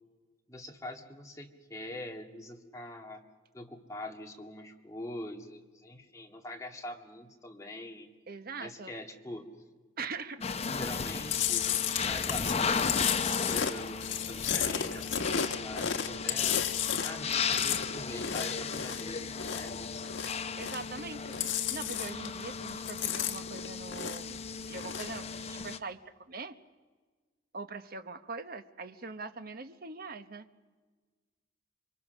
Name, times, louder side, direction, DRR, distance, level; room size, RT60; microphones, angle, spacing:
voice 1, 0.5-3.2 3.5-8.1 8.6-9.5 10.7-11.7 12.0-16.6 17.0-20.1, left 1 dB, 15° left, 2 dB, 2.0 m, -44 dB
voice 2, 8.3-8.9 10.0-10.5 20.6-21.4 21.7-24.4 24.7-26.0 26.3-26.6 27.5-30.5, right 4 dB, 50° right, 10 dB, 1.1 m, -42 dB
sound 1, 10.4-25.8, left 5 dB, 35° left, 0.7 m, -35 dB
Chewing mastication, 11.3-19.8 20.0-21.0 21.2-22.4 22.7-24.4 24.7-25.2, left 8 dB, 80° left, 1.3 m, -33 dB
28.0 x 24.0 x 6.4 m, 1.4 s
head